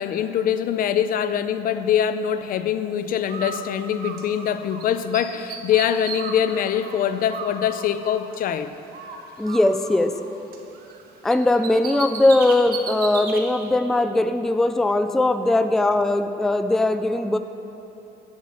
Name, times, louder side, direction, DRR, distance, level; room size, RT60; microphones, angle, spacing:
voice 1, 0.0-8.8, left 9 dB, 55° left, 11 dB, 0.5 m, -23 dB
Bird, 3.3-4.8 5.1-8.6 8.9-11.0 11.3-13.4, right 5 dB, 65° right, 1.2 m, -35 dB
voice 2, 9.4-10.2 11.2-17.4, left 2 dB, ahead, 9 dB, 0.3 m, -20 dB
7.4 x 7.3 x 7.5 m, 3.0 s
cardioid pair, 110°, 17 cm